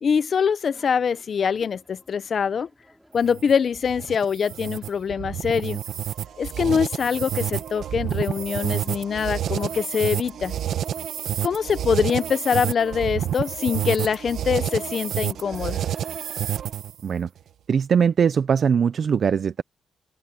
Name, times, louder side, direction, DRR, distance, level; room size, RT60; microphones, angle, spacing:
voice 1, 0.0-2.7 3.1-5.8 6.4-10.5 11.4-15.8, left 6 dB, 50° left, 0.7 m, -24 dB
sound 1, 0.7-16.6, equal, ahead, 6.4 m, -55 dB
sound 2, 3.1-17.0, right 10 dB, 75° right, 1.1 m, -29 dB
voice 2, 17.7-19.6, right 7 dB, 50° right, 0.4 m, -21 dB
cardioid pair, 125°, 0 cm